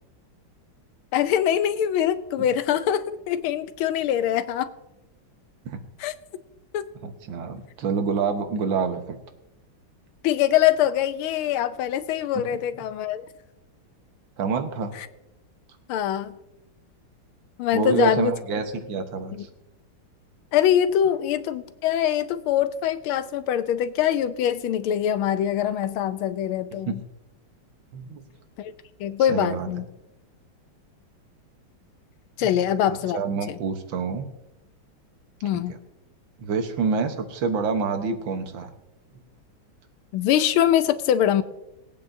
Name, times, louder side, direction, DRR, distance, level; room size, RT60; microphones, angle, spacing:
voice 1, 1.1-4.7 6.0-6.1 6.7-6.9 10.2-13.2 15.0-15.1 15.9-16.4 17.6-18.3 19.3-19.4 20.5-27.0 28.6-28.7 29.0-29.9 32.4-33.2 33.5-33.6 35.4-35.7 40.1-41.4, left 10 dB, 85° left, 12 dB, 1.5 m, -23 dB
voice 2, 7.0-9.2 14.4-14.9 17.7-19.5 26.9-27.0 27.9-28.2 29.3-29.7 33.1-34.3 35.5-35.6 36.4-38.7, right 5 dB, 65° right, 6 dB, 1.8 m, -27 dB
20.5 x 8.8 x 2.7 m, 0.92 s
omnidirectional pair, 2.3 m